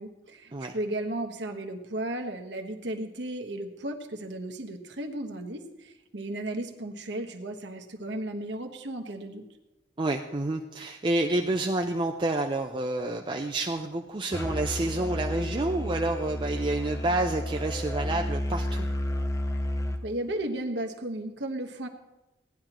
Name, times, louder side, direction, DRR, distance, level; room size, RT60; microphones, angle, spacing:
voice 1, 0.0-9.4 20.0-21.9, right 1 dB, 70° right, 3 dB, 1.3 m, -35 dB
voice 2, 10.0-18.9, right 2 dB, 25° right, 2 dB, 0.5 m, -29 dB
Musical instrument, 14.3-20.0, left 1 dB, 15° left, 0.6 m, -31 dB
17.5 x 10.5 x 3.0 m, 1.0 s
head